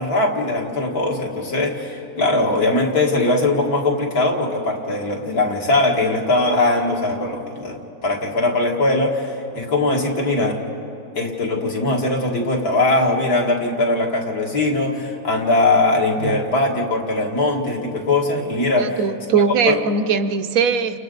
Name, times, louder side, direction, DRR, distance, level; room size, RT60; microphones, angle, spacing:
voice 1, 0.0-10.6 11.2-19.0 19.6-19.8, left 2 dB, 85° left, -1 dB, 2.7 m, -20 dB
voice 2, 18.8-21.0, right 6 dB, 70° right, 9 dB, 1.1 m, -20 dB
30.0 x 28.5 x 4.0 m, 2.8 s
omnidirectional pair, 1.6 m